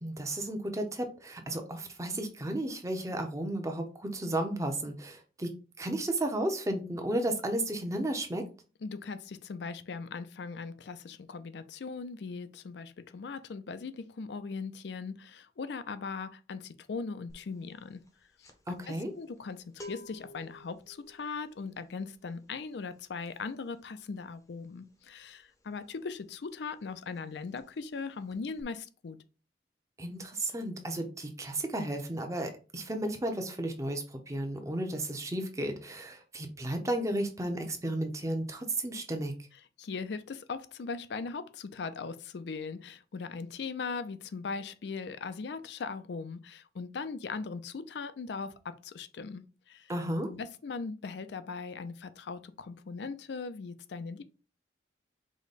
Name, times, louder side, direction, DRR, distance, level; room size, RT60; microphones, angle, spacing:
voice 1, 0.0-5.5 5.8-8.5 18.7-19.1 30.0-39.3 49.9-50.3, right 1 dB, 15° right, 0.7 m, -33 dB
voice 2, 8.8-18.0 18.4-18.5 18.9-29.2 39.8-49.9 50.3-54.2, left 4 dB, 70° left, 0.4 m, -39 dB
sound 1, 17.3-17.6 17.8-26.4 26.7-26.9 27.2-28.0 28.3-28.6, left 1 dB, 20° left, 0.6 m, -52 dB
5.0 x 2.2 x 4.0 m
head